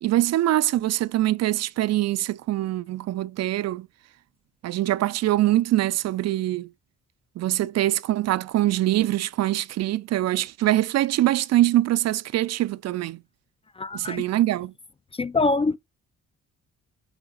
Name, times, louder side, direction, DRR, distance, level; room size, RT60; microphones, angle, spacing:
voice 1, 0.0-3.9 4.6-6.7 7.4-13.2 13.9-14.7, right 14 dB, 60° right, 0.4 m, -23 dB
voice 2, 13.8-14.2 15.1-15.8, left 3 dB, 20° left, 0.3 m, -24 dB
8.0 x 4.9 x 2.5 m
cardioid pair, 90°, 30 cm